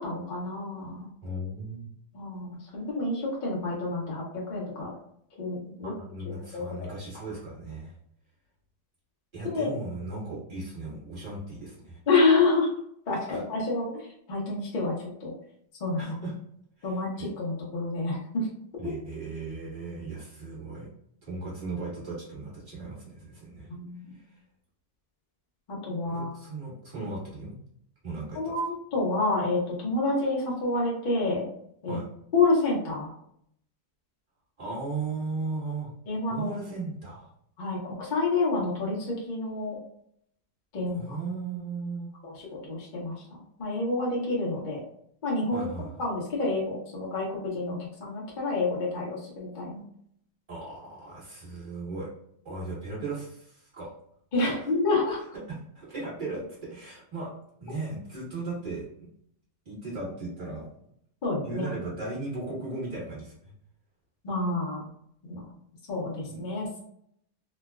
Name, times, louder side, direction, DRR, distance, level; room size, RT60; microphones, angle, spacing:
voice 1, 0.0-1.1 2.1-2.5 2.7-4.2 4.5-4.9 5.4-5.9 6.5-6.9 9.4-9.7 12.1-12.7 13.1-14.9 15.2-15.3 15.8-16.1 16.8-18.5 18.8-18.9 23.7-24.2 25.7-26.3 28.3-31.5 31.8-32.0 32.3-33.1 36.1-36.6 37.6-39.8 40.7-41.2 42.2-43.1 43.6-44.8 45.2-45.7 46.0-49.8 54.3-55.2 61.2-61.7 64.2-64.8 65.3-65.4 65.9-66.7, left 3 dB, 50° left, -3 dB, 0.5 m, -28 dB
voice 2, 1.2-1.9 5.8-7.9 9.3-12.0 13.3-13.4 16.0-16.3 16.8-17.3 18.8-20.9 21.2-23.7 24.1-24.2 26.0-27.6 28.0-28.7 31.9-32.0 34.6-37.3 40.8-42.1 45.5-46.0 50.5-52.1 52.4-53.9 54.4-54.6 55.5-57.3 57.6-58.9 59.6-60.7 61.4-63.5 66.3-66.4, right 3 dB, 30° right, -8 dB, 1.5 m, -37 dB
3.1 x 2.3 x 2.3 m, 0.70 s
omnidirectional pair, 1.9 m